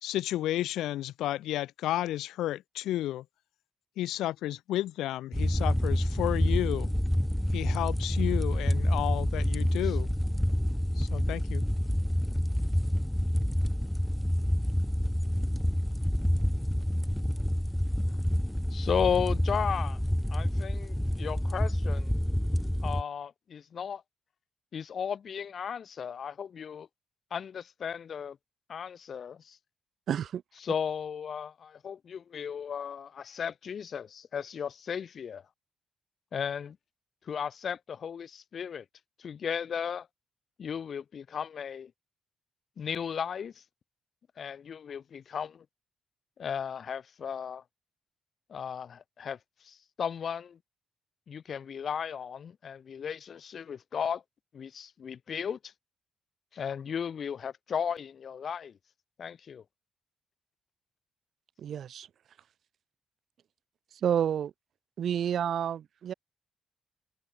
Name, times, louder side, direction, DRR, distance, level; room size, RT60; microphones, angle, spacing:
voice 1, 0.0-3.2 4.0-6.9 7.5-10.1 11.0-11.7, left 14 dB, 85° left, 2.3 m, -32 dB
sound 1, 5.3-23.0, equal, 5° left, 1.3 m, -28 dB
voice 2, 18.7-20.0 20.3-22.1 22.8-24.0 24.7-26.9 27.3-28.4 28.7-29.6 30.6-35.4 36.3-36.8 37.2-38.8 39.2-40.1 40.6-41.9 42.8-43.6 44.4-45.6 46.4-47.6 48.5-49.4 49.6-50.6 51.3-54.2 54.5-55.7 56.5-58.8 59.2-59.6, left 7 dB, 60° left, 4.6 m, -35 dB
voice 3, 30.1-30.4 61.6-62.1 64.0-64.5 65.0-66.1, right 9 dB, 70° right, 1.5 m, -29 dB
supercardioid pair, 60°, 0 cm